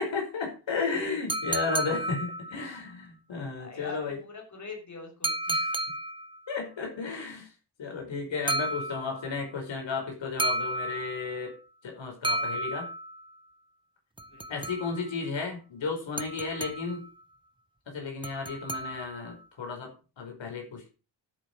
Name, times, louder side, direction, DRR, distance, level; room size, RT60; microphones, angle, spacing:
voice 1, 0.0-4.2 5.5-5.8 6.5-7.5 7.8-12.9 14.5-17.1 17.9-20.9, left 4 dB, 90° left, 2 dB, 4.9 m, -34 dB
sound 1, 1.3-2.8 5.2-6.4 8.5-9.4 10.4-11.4 12.2-13.3 14.2-15.1 16.2-17.1 18.2-19.3, right 1 dB, 10° right, 0.7 m, -32 dB
voice 2, 3.6-5.3 14.3-14.6, left 4 dB, 40° left, 1 dB, 6.2 m, -43 dB
11.5 x 7.9 x 6.5 m, 0.34 s
wide cardioid pair, 125°, 44 cm